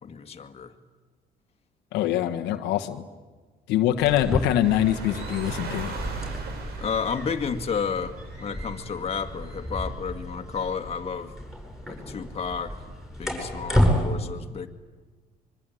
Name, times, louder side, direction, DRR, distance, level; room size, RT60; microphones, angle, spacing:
voice 1, 0.0-0.7 6.8-11.3 11.9-12.8 13.2-14.7, left 6 dB, 35° left, 5 dB, 2.2 m, -31 dB
voice 2, 1.9-3.1 3.7-6.0, left 12 dB, 90° left, 6 dB, 1.5 m, -24 dB
sound 1, 3.9-14.0, equal, ahead, 7.9 m, -31 dB
sound 2, 4.6-9.7, right 5 dB, 75° right, 4.9 m, -39 dB
24.5 x 24.0 x 9.3 m, 1.4 s
cardioid pair, 110°, 17 cm